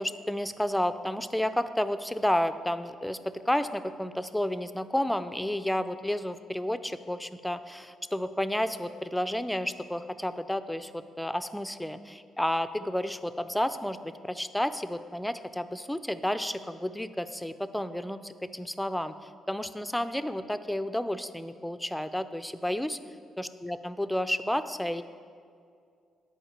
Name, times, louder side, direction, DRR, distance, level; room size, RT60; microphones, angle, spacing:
voice 1, 0.0-23.0 23.4-25.0, left 1 dB, 5° left, 11 dB, 0.4 m, -31 dB
10.0 x 4.9 x 7.3 m, 2.3 s
cardioid pair, 90°, 0 cm